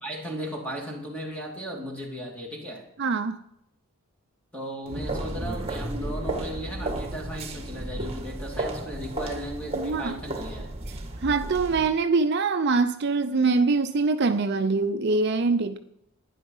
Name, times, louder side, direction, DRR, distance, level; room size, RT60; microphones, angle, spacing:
voice 1, 0.0-2.9 4.5-10.7, equal, 5° left, 0 dB, 2.6 m, -36 dB
voice 2, 3.0-3.4 9.7-10.2 11.2-15.8, right 4 dB, 50° right, 8 dB, 0.5 m, -24 dB
sound 1, 4.9-11.9, right 1 dB, 25° right, 1.5 m, -33 dB
12.0 x 10.0 x 5.5 m, 0.76 s
head